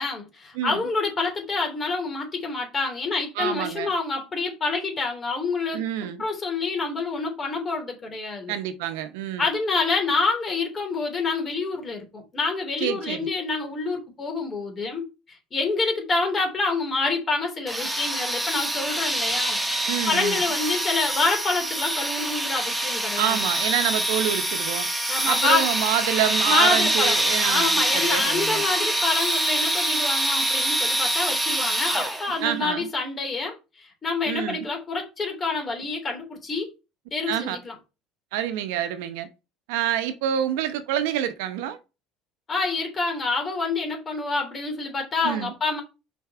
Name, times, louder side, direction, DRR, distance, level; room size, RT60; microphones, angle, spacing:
voice 1, 0.0-5.8 6.2-8.5 9.4-15.0 15.5-19.6 20.0-23.4 25.1-25.6 26.4-27.2 27.4-36.7 37.1-37.7 42.5-45.8, left 3 dB, 25° left, 3.4 m, -27 dB
voice 2, 3.4-3.9 5.7-6.2 8.5-9.4 12.8-13.2 19.9-20.4 23.2-24.9 25.2-28.6 32.4-32.9 34.3-34.7 37.3-37.6 38.3-39.3 39.7-41.8 45.2-45.5, right 10 dB, 90° right, 1.0 m, -27 dB
sound 1, 17.7-32.4, right 1 dB, 5° right, 1.4 m, -25 dB
6.0 x 4.7 x 4.4 m
cardioid pair, 125°, 0 cm